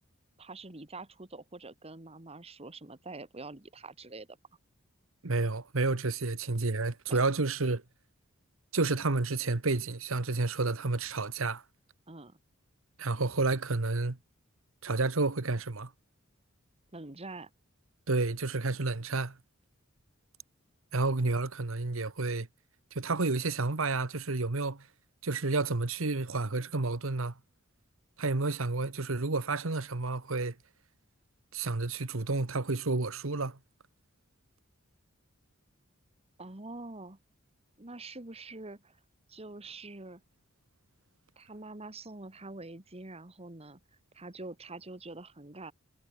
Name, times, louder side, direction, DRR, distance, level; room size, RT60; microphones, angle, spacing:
voice 1, 0.4-4.3 7.1-7.2 12.1-12.4 16.9-17.5 36.4-37.2 37.8-39.0 39.3-40.2 41.4-43.8 44.1-45.7, right 2 dB, 30° right, 1.8 m, -45 dB
voice 2, 5.2-7.8 8.7-11.6 13.0-14.2 14.8-15.9 18.1-19.4 20.9-22.5 22.9-24.9 25.2-27.4 28.2-30.6 31.5-33.6, right 3 dB, 70° right, 1.3 m, -30 dB
head